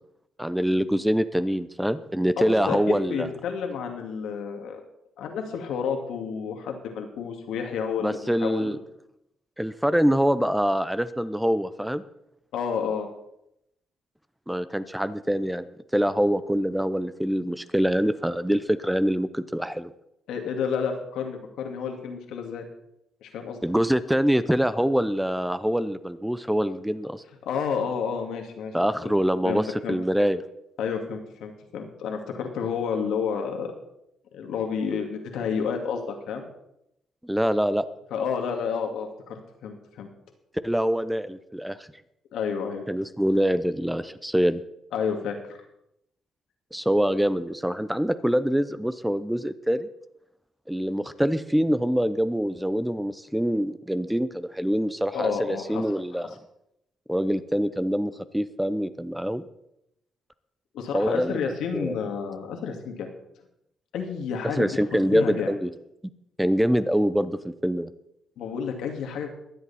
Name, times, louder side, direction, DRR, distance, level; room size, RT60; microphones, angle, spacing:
voice 1, 0.4-3.3 8.0-8.8 9.6-12.0 14.5-15.7 15.9-19.9 23.6-27.2 28.7-30.4 37.2-37.8 40.6-41.9 42.9-44.6 46.7-49.9 50.7-56.3 57.1-59.4 60.9-61.4 61.7-62.0 64.4-65.7 66.4-67.9, equal, 5° right, 13 dB, 0.7 m, -25 dB
voice 2, 2.4-4.8 5.2-8.8 12.5-13.1 20.3-22.7 23.2-23.6 27.5-28.7 29.0-29.1 29.4-30.0 30.8-33.7 34.3-36.4 38.1-40.1 42.3-42.8 44.9-45.6 55.1-55.8 56.1-56.2 60.7-63.1 63.9-65.5 68.4-69.3, left 6 dB, 80° left, 4 dB, 2.3 m, -30 dB
22.0 x 8.1 x 4.3 m, 0.80 s
cardioid pair, 90°, 0 cm